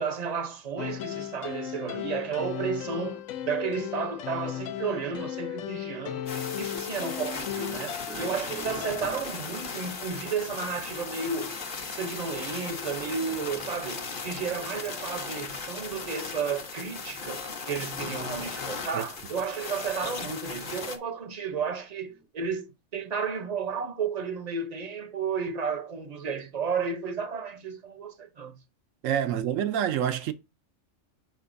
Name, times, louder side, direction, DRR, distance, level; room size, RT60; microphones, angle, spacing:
voice 1, 0.0-6.3 6.6-11.6 11.9-28.6, right 5 dB, 40° right, 0.7 m, -33 dB
sound 1, 0.8-9.0, left 11 dB, 80° left, 1.0 m, -36 dB
sound 2, 6.2-21.4 22.0-22.3, right 3 dB, 5° right, 0.7 m, -54 dB
sound 3, 6.3-21.0, left 4 dB, 45° left, 1.0 m, -37 dB
voice 2, 29.0-30.3, right 9 dB, 80° right, 1.1 m, -27 dB
7.6 x 5.2 x 2.6 m
omnidirectional pair, 1.3 m